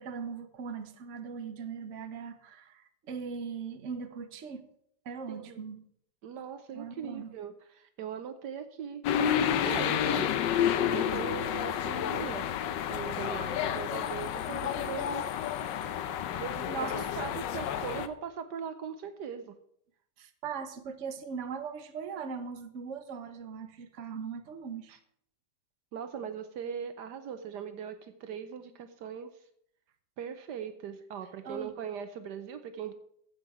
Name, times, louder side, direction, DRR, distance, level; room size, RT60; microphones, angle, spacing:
voice 1, 0.0-4.7 5.0-5.9 6.7-7.3 16.7-17.1 20.2-24.9 31.4-31.7, right 6 dB, 50° right, 1.2 m, -39 dB
voice 2, 5.3-5.6 6.2-9.0 9.6-10.3 10.9-12.5 12.9-15.2 16.4-19.6 24.9-25.0 25.9-29.3 30.2-32.9, right 7 dB, 70° right, 1.4 m, -40 dB
sound 1, 9.0-18.1, left 9 dB, 85° left, 1.4 m, -30 dB
13.0 x 8.1 x 4.7 m
omnidirectional pair, 1.9 m